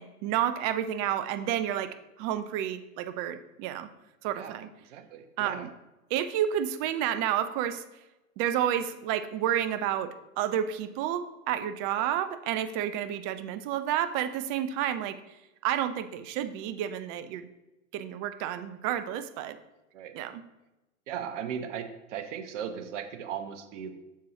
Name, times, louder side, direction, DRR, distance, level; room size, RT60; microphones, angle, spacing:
voice 1, 0.0-3.9 4.2-4.7 5.4-5.7 6.1-7.8 8.4-10.1 10.4-15.2 15.6-17.5 17.9-19.6 20.1-20.4, right 10 dB, 40° right, 11 dB, 0.6 m, -30 dB
voice 2, 4.3-5.7 12.0-12.1 19.9-20.1 21.1-23.9, right 8 dB, 60° right, 9 dB, 0.9 m, -38 dB
7.4 x 6.9 x 2.8 m, 0.99 s
figure-of-eight pair, 90°, 40 cm